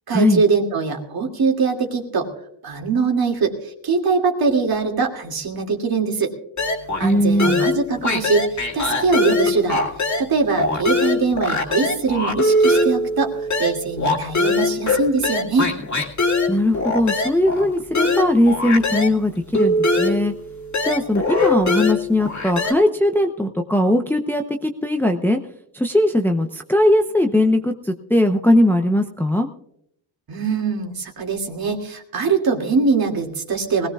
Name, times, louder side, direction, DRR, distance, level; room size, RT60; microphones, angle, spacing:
voice 1, 0.1-2.3 2.6-6.3 7.0-8.4 8.7-9.8 10.2-15.7 30.3-33.9, right 4 dB, 50° right, 2 dB, 2.5 m, -22 dB
sound 1, 6.6-7.1 7.4-10.3 10.6-19.2 19.5-22.7, left 2 dB, 35° left, 2.3 m, -21 dB
voice 2, 7.0-7.6 16.5-20.3 20.8-25.4 25.7-29.5, left 1 dB, 5° left, 4 dB, 0.8 m, -19 dB
20.5 x 17.5 x 2.4 m, 0.73 s
cardioid pair, 95°, 47 cm